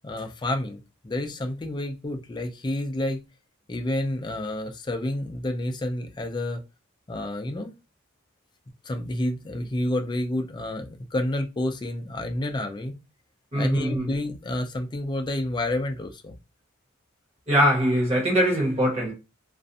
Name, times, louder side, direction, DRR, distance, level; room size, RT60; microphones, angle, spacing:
voice 1, 0.0-3.2 3.7-6.6 7.1-7.7 8.8-13.0 13.6-16.4, left 1 dB, 20° left, 0.4 m, -29 dB
voice 2, 13.5-14.1 17.5-19.1, equal, 30° right, 0.9 m, -22 dB
2.4 x 2.1 x 2.6 m
head